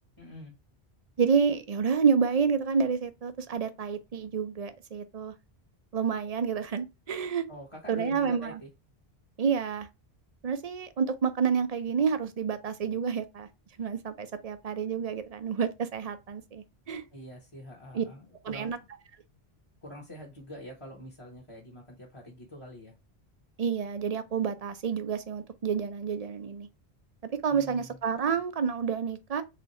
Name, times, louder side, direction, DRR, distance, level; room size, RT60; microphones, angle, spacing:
voice 1, 0.2-0.5 7.5-8.7 17.1-18.9 19.8-22.9 27.5-27.9, left 1 dB, 30° left, 1.1 m, -45 dB
voice 2, 1.2-5.3 5.9-7.5 7.9-8.6 9.4-9.9 10.4-13.5 13.8-17.0 17.9-18.0 18.4-18.8 23.6-26.7 27.3-29.4, right 6 dB, 45° right, 0.5 m, -29 dB
3.6 x 3.3 x 4.0 m
omnidirectional pair, 1.1 m